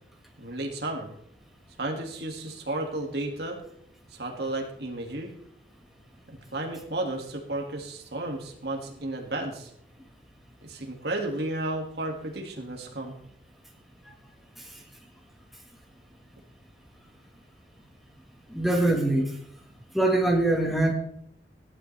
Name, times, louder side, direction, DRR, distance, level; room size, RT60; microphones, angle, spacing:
voice 1, 0.4-1.1 1.8-3.6 4.1-5.3 6.3-9.7 10.6-13.2, right 2 dB, 60° right, 1 dB, 2.1 m, -33 dB
voice 2, 18.5-19.3 19.9-20.9, right 2 dB, ahead, 1 dB, 1.6 m, -23 dB
15.0 x 11.5 x 3.3 m, 0.69 s
head